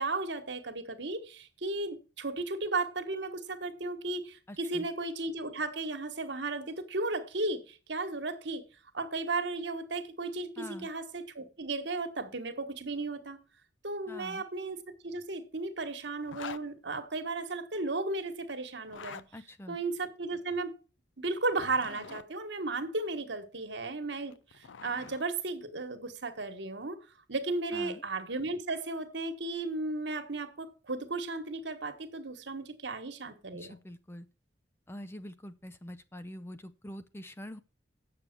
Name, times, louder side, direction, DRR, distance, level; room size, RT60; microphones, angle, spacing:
voice 1, 0.0-8.6 8.9-13.4 13.8-19.2 19.7-20.7 21.2-27.0 27.3-33.8, right 3 dB, 70° right, 1.4 m, -35 dB
voice 2, 4.5-4.9 10.6-10.9 14.1-14.4 19.3-19.8 27.7-28.0 33.5-34.3 34.9-37.6, equal, 15° left, 0.4 m, -45 dB
Zipper (clothing), 16.2-16.6 18.8-19.3 21.4-22.3 24.1-25.2, left 6 dB, 80° left, 0.5 m, -45 dB
8.4 x 6.8 x 6.0 m
head